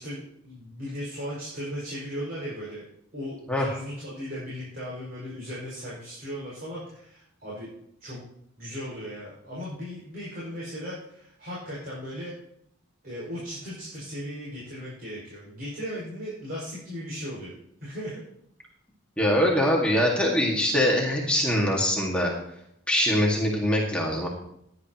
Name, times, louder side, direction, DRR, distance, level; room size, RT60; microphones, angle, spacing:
voice 1, 0.0-2.8 3.1-7.7 8.0-8.2 8.6-12.3 13.0-17.5 17.8-18.2, equal, 45° right, -8 dB, 5.5 m, -37 dB
voice 2, 19.2-22.3 22.9-24.3, equal, 5° left, -2 dB, 1.9 m, -23 dB
16.5 x 10.5 x 3.0 m, 0.72 s
head